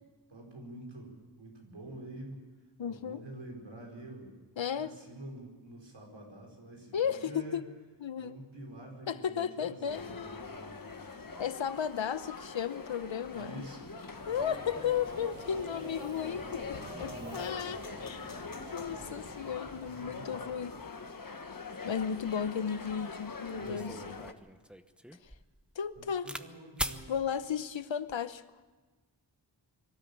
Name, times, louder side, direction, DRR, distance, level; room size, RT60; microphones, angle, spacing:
voice 1, 0.3-2.4 2.9-4.3 4.7-7.6 8.2-11.3 13.3-13.9 16.7-17.5 19.8-20.5 23.5-24.1 25.9-27.1, right 1 dB, 90° right, 4.9 m, -47 dB
voice 2, 2.8-3.2 4.6-4.9 6.9-7.6 8.0-8.4 9.1-10.5 11.4-13.6 14.3-18.4 18.7-20.8 21.8-24.2 25.8-26.3 27.1-28.4, left 8 dB, 85° left, 0.9 m, -34 dB
sound 1, 9.9-24.3, left 4 dB, 45° left, 1.3 m, -44 dB
Subway metro underground, 14.2-20.4, right 1 dB, 25° right, 3.8 m, -48 dB
sound 2, 23.6-26.5 26.8-27.0 27.9-28.3, equal, ahead, 0.9 m, -40 dB
24.0 x 13.0 x 8.6 m
wide cardioid pair, 60°, 45 cm